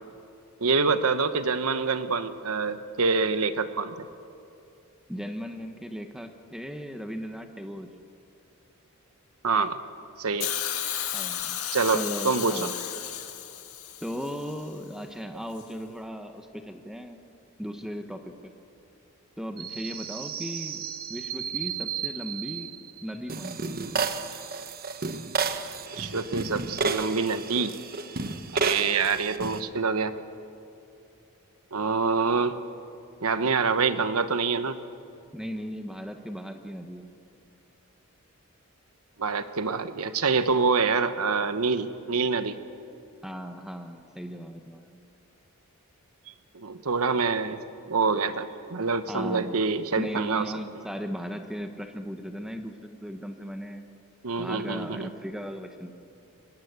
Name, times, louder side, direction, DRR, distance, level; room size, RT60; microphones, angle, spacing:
voice 1, 0.6-4.1 9.4-9.8 10.2-10.5 11.7-12.6 25.9-27.7 28.5-30.1 31.7-32.6 33.2-34.8 39.2-42.6 46.5-47.6 47.9-50.5 54.2-55.1, right 4 dB, 80° right, 10 dB, 1.1 m, -26 dB
voice 2, 5.1-7.9 11.1-11.6 11.9-12.7 14.0-17.2 17.6-18.5 19.4-23.8 35.3-37.1 43.2-45.0 49.1-49.5 50.0-53.9 54.4-55.9, equal, ahead, 6 dB, 1.1 m, -37 dB
Hiss, 10.4-14.5 15.6-15.7, left 10 dB, 75° left, 1.9 m, -33 dB
sound 1, 19.6-29.6, right 5 dB, 40° right, 1.0 m, -32 dB
23.5 x 20.0 x 8.1 m, 2.6 s
head